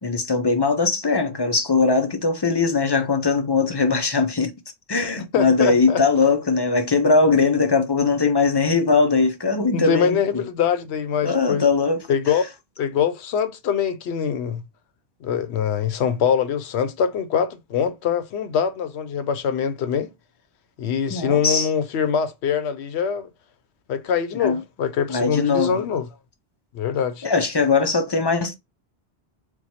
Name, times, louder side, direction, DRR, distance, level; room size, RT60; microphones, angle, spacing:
voice 1, 0.0-4.5 4.9-10.4 11.2-12.0 21.1-21.7 24.4-24.6 25.1-25.8 27.2-28.5, left 4 dB, 35° left, 0.4 m, -20 dB
voice 2, 5.3-6.0 9.7-11.6 12.1-12.4 12.8-14.6 15.2-20.1 20.8-23.3 23.9-26.1 26.7-27.3, left 7 dB, 85° left, 0.9 m, -23 dB
4.4 x 2.2 x 4.1 m
omnidirectional pair, 1.1 m